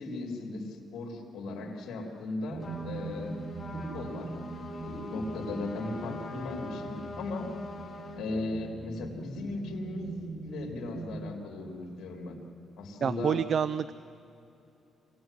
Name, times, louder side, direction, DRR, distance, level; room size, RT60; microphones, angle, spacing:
voice 1, 0.0-3.4 3.7-4.3 4.7-7.5 8.2-12.4 12.8-13.4, left 2 dB, 70° left, 1 dB, 4.1 m, -37 dB
sound 1, 2.5-11.3, right 3 dB, 40° right, 2.6 m, -42 dB
Trumpet, 2.6-8.2, left 3 dB, 30° left, 4.4 m, -43 dB
voice 2, 13.0-14.0, right 7 dB, 55° right, 16 dB, 0.5 m, -28 dB
26.0 x 18.5 x 9.5 m, 2.9 s
cardioid pair, 90°, 0 cm